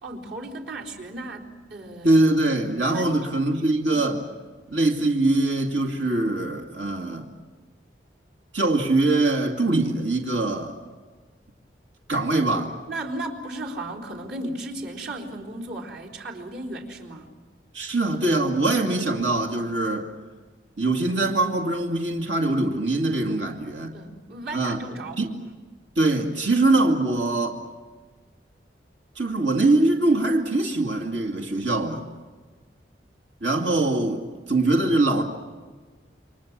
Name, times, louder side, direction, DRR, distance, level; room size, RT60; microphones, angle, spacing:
voice 1, 0.0-2.1 2.8-3.2 3.9-4.1 12.9-17.3 23.3-23.4 23.9-25.2, right 1 dB, 75° right, 4.2 m, -35 dB
voice 2, 2.0-4.2 4.7-7.3 8.5-10.8 12.1-12.8 17.7-20.1 20.8-24.0 24.5-24.8 25.2-25.3 26.0-27.6 29.2-32.0 33.4-35.2, right 2 dB, 90° right, 2.5 m, -23 dB
29.0 x 24.5 x 7.5 m
head